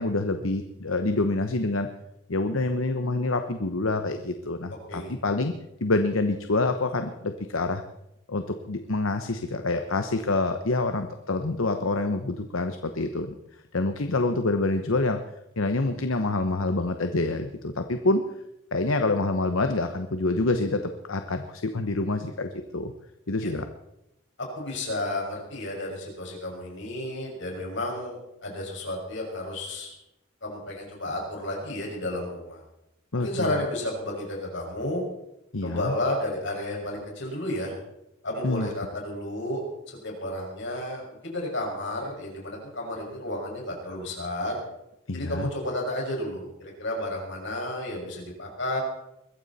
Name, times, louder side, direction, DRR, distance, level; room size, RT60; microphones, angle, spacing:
voice 1, 0.0-1.9 2.3-5.5 5.8-7.8 8.3-13.3 13.7-15.2 15.6-18.2 18.7-22.9 23.3-23.7 33.1-33.6 35.5-35.9 38.4-38.7 45.1-45.5, left 2 dB, 75° left, 7 dB, 1.0 m, -27 dB
voice 2, 24.5-29.9 30.4-32.6 33.1-35.0 35.6-37.7 38.2-39.6 40.0-44.6 45.1-48.8, left 1 dB, 60° left, -1 dB, 6.1 m, -32 dB
22.0 x 14.5 x 4.2 m, 0.85 s
head